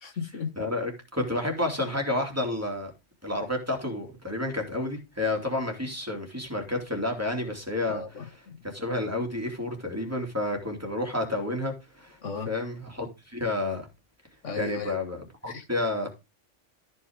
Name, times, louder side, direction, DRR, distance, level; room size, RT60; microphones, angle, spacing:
voice 1, 0.0-0.5 7.9-8.6 12.2-12.5 14.4-15.0 15.5-15.7, left 5 dB, 80° left, 1.8 m, -35 dB
voice 2, 0.6-2.9 3.2-8.0 8.6-12.2 12.5-13.9 14.6-16.1, left 2 dB, 10° right, 2.7 m, -30 dB
13.5 x 5.5 x 3.6 m
omnidirectional pair, 1.2 m